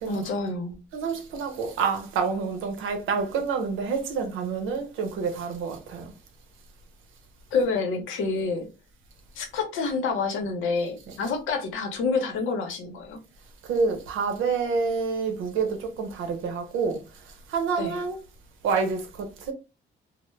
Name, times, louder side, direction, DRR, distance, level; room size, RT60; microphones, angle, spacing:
voice 1, 0.1-0.8 7.5-8.7 9.4-13.2 17.8-18.0, left 4 dB, 85° left, 0.8 m, -28 dB
voice 2, 0.9-6.1 11.1-11.2 13.7-17.0 17.5-18.2 18.6-19.5, right 5 dB, 90° right, 0.7 m, -28 dB
2.1 x 2.1 x 3.1 m
cardioid pair, 90°, 20 cm